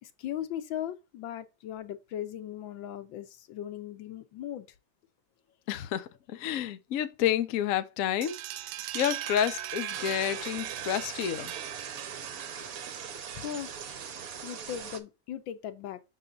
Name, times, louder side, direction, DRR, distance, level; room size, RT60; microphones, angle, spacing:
voice 1, 0.0-4.7 12.4-12.7 13.3-13.8 14.4-16.0, left 11 dB, 80° left, 1.5 m, -38 dB
voice 2, 5.7-8.4 8.9-11.5, left 10 dB, 65° left, 0.9 m, -30 dB
sound 1, 8.2-13.7, right 13 dB, 90° right, 1.3 m, -39 dB
sound 2, 9.9-15.0, right 7 dB, 60° right, 1.1 m, -41 dB
6.5 x 4.2 x 3.7 m
omnidirectional pair, 2.1 m